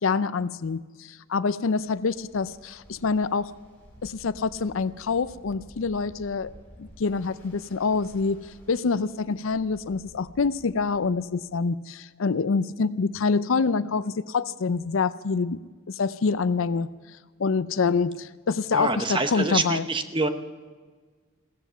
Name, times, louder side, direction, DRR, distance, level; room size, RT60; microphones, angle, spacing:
voice 1, 0.0-3.5 4.0-6.5 6.8-15.6 15.9-16.9 17.4-19.8, left 4 dB, 70° left, 16 dB, 0.5 m, -26 dB
Ocean, 1.8-11.5, equal, 10° left, 5.5 m, -52 dB
voice 2, 18.7-20.3, right 3 dB, 25° right, 8 dB, 0.9 m, -26 dB
16.0 x 14.5 x 5.6 m, 1.5 s
head